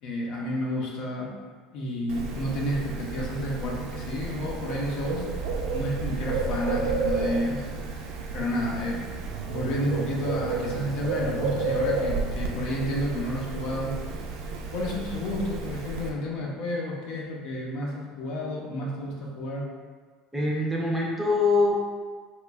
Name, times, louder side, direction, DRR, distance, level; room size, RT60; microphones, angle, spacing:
voice 1, 0.0-1.3 1.7-5.2 5.7-7.6 8.3-9.1 9.4-13.9 14.7-19.7, equal, 65° left, -2 dB, 0.7 m, -30 dB
Bird, 2.1-16.1, right 3 dB, 75° right, 0.4 m, -31 dB
voice 2, 20.3-21.9, left 3 dB, 5° right, -4 dB, 0.5 m, -24 dB
3.0 x 2.2 x 3.4 m, 1.5 s
cardioid pair, 125°, 0 cm